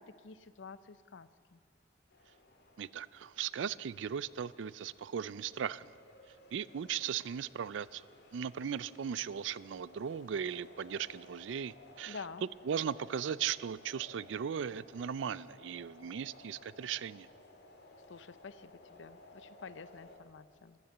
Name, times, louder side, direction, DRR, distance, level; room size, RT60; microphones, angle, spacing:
voice 1, 0.0-1.6 12.1-12.5 18.1-20.8, left 5 dB, 80° left, 15 dB, 0.6 m, -49 dB
sound 1, 2.1-20.2, left 2 dB, 65° left, 1.9 m, -58 dB
voice 2, 2.8-5.9 6.5-8.1 8.3-12.2 12.7-17.3, right 8 dB, 80° right, 20 dB, 0.4 m, -37 dB
14.0 x 12.0 x 7.8 m, 2.1 s
head